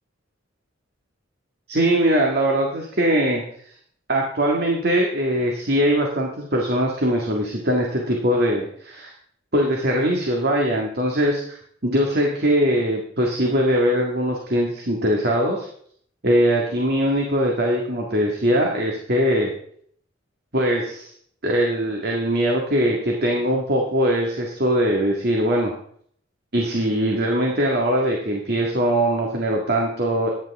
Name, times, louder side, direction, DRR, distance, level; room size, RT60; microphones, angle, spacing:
voice 1, 1.7-3.4 4.1-9.1 9.5-11.6 11.8-15.7 16.2-19.5 20.5-21.1 21.4-25.7 26.5-30.3, equal, 50° right, 0 dB, 1.9 m, -21 dB
14.5 x 10.5 x 3.6 m, 0.63 s
head